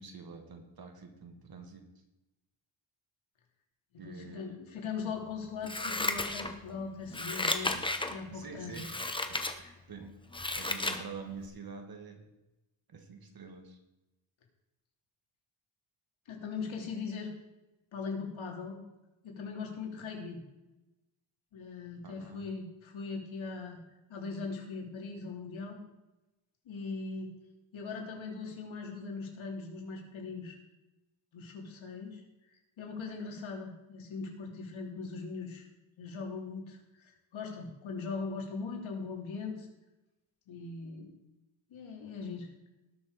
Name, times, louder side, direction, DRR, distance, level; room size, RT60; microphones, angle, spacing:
voice 1, 0.0-1.9 4.0-4.6 8.3-9.1 9.9-10.2 10.6-12.3 12.9-13.8 22.0-22.5, right 5 dB, 50° right, 4 dB, 2.1 m, -46 dB
voice 2, 4.0-7.8 8.1-8.9 9.6-9.8 16.3-17.3 17.9-18.8 19.2-20.4 21.5-23.8 24.1-25.8 26.6-27.4 27.7-30.6 31.3-32.2 32.8-35.7 36.0-39.7 40.5-41.1 41.7-42.5, left 4 dB, 85° left, 1 dB, 3.0 m, -40 dB
Scissors, 5.6-6.7 7.1-8.1 8.7-9.5 10.0-11.0 11.4-11.5, left 2 dB, 10° left, 1.0 m, -33 dB
19.0 x 6.4 x 4.9 m, 0.98 s
wide cardioid pair, 125°, 46 cm